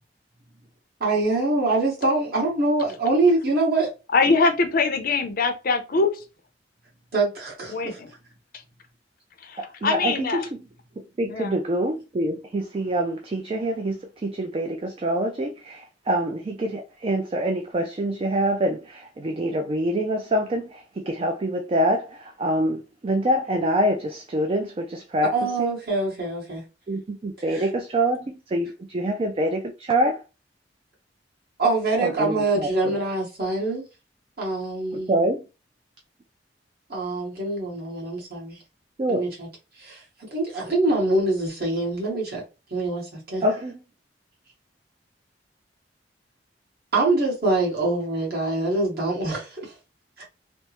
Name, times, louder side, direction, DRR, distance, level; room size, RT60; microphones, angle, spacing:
voice 1, 1.0-3.9 7.1-8.0 25.3-26.6 27.5-27.6 31.6-33.8 34.4-35.1 36.9-38.6 39.1-39.5 39.8-40.0 40.3-42.4 42.7-43.4 46.9-49.7 50.2-50.3, right 2 dB, 55° right, 1.5 m, -24 dB
voice 2, 4.1-6.2 7.7-8.1 9.4-10.4 11.3-11.5, left 4 dB, 55° left, 0.5 m, -23 dB
voice 3, 9.6-10.5 11.2-25.7 26.9-30.2 32.0-33.0 34.9-35.4 39.0-39.3 43.4-43.8, right 1 dB, 30° right, 0.4 m, -26 dB
3.4 x 2.0 x 2.9 m
head